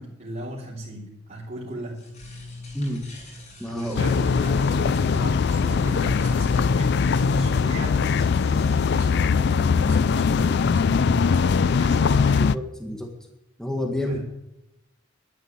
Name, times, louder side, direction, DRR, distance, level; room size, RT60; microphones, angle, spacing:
voice 1, 0.0-2.1 3.7-12.6 14.0-14.2, equal, 45° right, -8 dB, 3.4 m, -35 dB
sound 1, 1.7-9.3, left 2 dB, 40° left, 7.3 m, -46 dB
voice 2, 2.7-3.1 3.6-4.0 12.4-13.1 13.6-14.2, left 1 dB, 5° left, 1 dB, 1.8 m, -29 dB
sound 2, 4.0-12.6, left 5 dB, 60° left, 0.4 m, -21 dB
12.0 x 11.0 x 7.5 m, 0.88 s
head